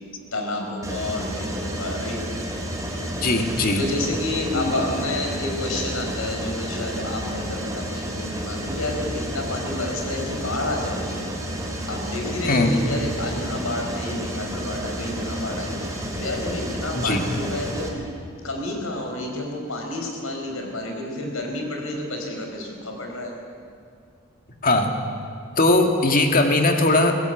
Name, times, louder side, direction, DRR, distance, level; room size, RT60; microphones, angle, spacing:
voice 1, 0.3-2.2 3.7-11.2 11.9-18.0 18.3-23.3, left 2 dB, 85° left, 2 dB, 4.6 m, -30 dB
Mechanisms, 0.8-17.9, right 1 dB, 15° right, 3.0 m, -31 dB
voice 2, 3.2-3.8 4.5-4.6 12.5-12.7 17.0-17.2 24.6-25.0 25.6-27.2, left 2 dB, 45° left, 4 dB, 2.1 m, -19 dB
22.0 x 16.5 x 8.1 m, 2.3 s
head